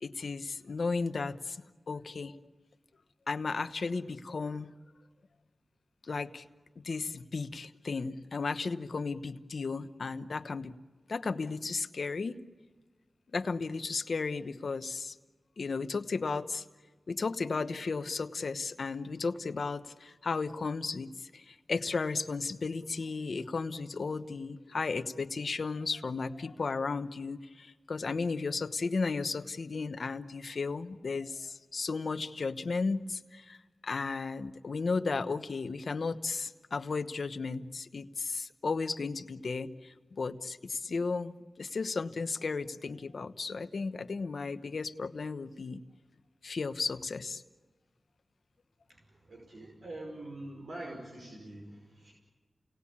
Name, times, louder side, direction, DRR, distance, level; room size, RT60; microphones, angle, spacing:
voice 1, 0.0-1.6 1.9-2.4 3.3-4.7 6.1-6.4 6.8-10.7 11.1-12.4 13.3-15.2 15.6-16.6 17.1-33.6 33.8-45.8 46.4-47.4, left 4 dB, 75° left, 9 dB, 1.0 m, -34 dB
voice 2, 48.9-52.1, right 1 dB, 90° right, -2 dB, 5.4 m, -45 dB
29.0 x 19.0 x 8.6 m, 1.3 s
wide cardioid pair, 60°, 0 cm